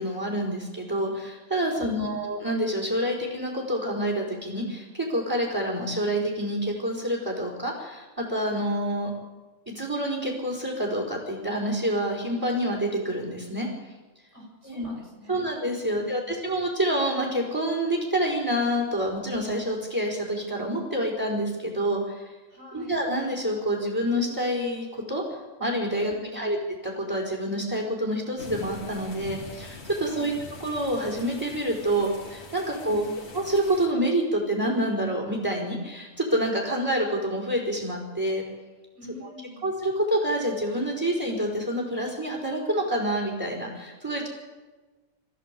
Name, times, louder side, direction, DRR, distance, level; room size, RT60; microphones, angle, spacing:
voice 1, 0.0-9.1 9.7-13.7 14.6-14.9 15.3-22.3 22.7-25.2 25.6-26.6 26.8-30.3 30.6-33.0 33.3-38.4 39.2-39.3 39.6-44.3, right 1 dB, 15° right, -2 dB, 4.7 m, -27 dB
voice 2, 1.6-2.2 14.3-15.4 15.7-16.4 22.5-23.0 26.0-26.6 30.0-30.4 32.7-33.3 38.9-39.7, left 1 dB, 65° right, -1 dB, 6.5 m, -46 dB
sound 1, 28.4-33.9, left 3 dB, 60° left, 3.0 m, -43 dB
25.5 x 15.0 x 8.4 m, 1.2 s
omnidirectional pair, 1.3 m